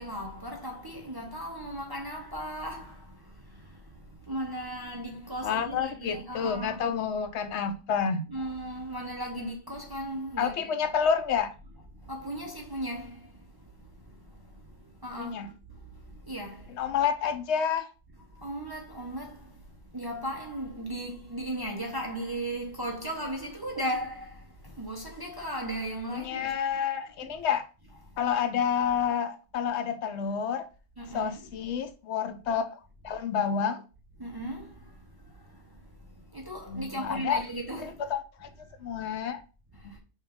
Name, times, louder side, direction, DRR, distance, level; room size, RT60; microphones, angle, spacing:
voice 1, 0.0-3.2 3.5-3.8 4.3-6.9 8.3-10.7 12.1-13.3 15.0-15.4 16.3-16.8 18.4-19.5 19.9-26.5 27.2-27.3 31.0-31.5 34.2-34.7 36.3-38.0, right 1 dB, 30° right, 0.4 m, -36 dB
voice 2, 5.4-8.2 9.4-9.5 10.4-11.5 15.2-15.5 16.8-17.9 26.1-27.7 28.2-30.7 31.1-32.6 33.0-33.8 36.7-37.4 38.1-38.5 38.8-39.4 39.8-39.9, left 7 dB, 70° left, 0.8 m, -29 dB
5.6 x 2.3 x 3.4 m
omnidirectional pair, 1.3 m